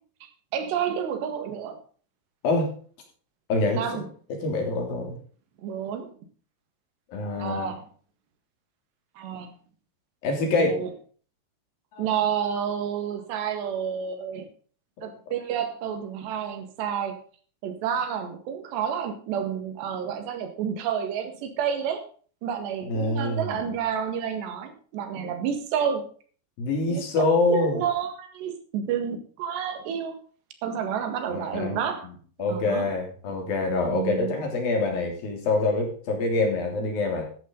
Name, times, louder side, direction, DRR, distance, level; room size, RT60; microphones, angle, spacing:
voice 1, 0.5-1.8 3.7-4.1 5.6-6.1 7.4-7.8 9.2-9.5 10.6-10.9 12.0-14.5 15.0-17.2 17.6-22.1 22.4-26.1 26.9-30.2 30.6-32.1 32.5-32.9 33.9-34.4, right 8 dB, 90° right, 7 dB, 4.0 m, -30 dB
voice 2, 3.5-4.0 4.4-5.2 7.1-7.7 10.2-10.8 11.9-12.0 22.8-23.7 26.6-27.8 31.3-31.8 32.4-37.2, left 2 dB, 60° left, 2 dB, 4.9 m, -25 dB
13.0 x 11.5 x 3.9 m, 0.42 s
omnidirectional pair, 4.7 m